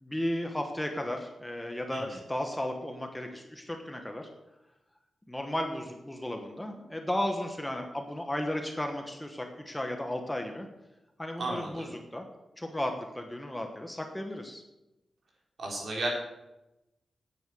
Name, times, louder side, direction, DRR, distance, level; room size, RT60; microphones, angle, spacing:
voice 1, 0.0-4.3 5.3-10.7 11.2-12.3 12.6-14.6, left 1 dB, 10° left, 4 dB, 1.1 m, -34 dB
voice 2, 11.4-11.9 15.6-16.1, right 2 dB, 55° right, -2 dB, 4.0 m, -33 dB
9.6 x 8.8 x 6.9 m, 0.94 s
wide cardioid pair, 155°, 0 cm